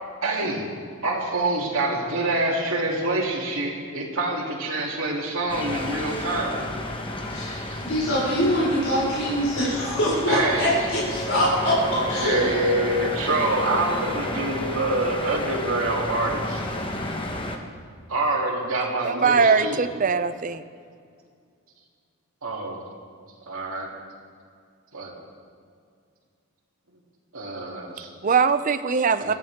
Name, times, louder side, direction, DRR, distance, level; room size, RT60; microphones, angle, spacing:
voice 1, 0.2-0.7 1.0-6.6 7.7-7.8 10.3-10.7 12.2-16.7 18.1-19.8 22.4-22.8 23.5-23.9 24.9-25.1 27.3-28.1 29.2-29.3, right 2 dB, 70° right, -2 dB, 3.0 m, -26 dB
sound 1, 5.5-17.6, left 1 dB, 25° left, 1.1 m, -31 dB
voice 2, 7.3-12.5, equal, 65° left, -7 dB, 4.7 m, -24 dB
voice 3, 19.0-20.6 28.2-29.3, right 5 dB, 35° right, 10 dB, 0.5 m, -21 dB
22.0 x 14.5 x 3.6 m, 2.2 s
head